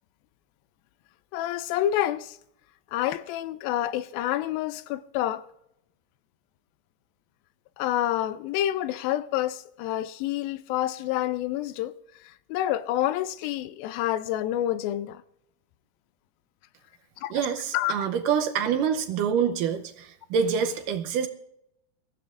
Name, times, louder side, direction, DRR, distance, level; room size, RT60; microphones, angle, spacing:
voice 1, 1.3-2.4 2.9-5.5 7.8-11.9 12.2-15.2 17.2-17.3 17.7-17.9, left 13 dB, 80° left, 2.4 m, -28 dB
voice 2, 17.3-21.3, right 7 dB, 75° right, 2.2 m, -26 dB
22.5 x 15.0 x 2.5 m
omnidirectional pair, 4.2 m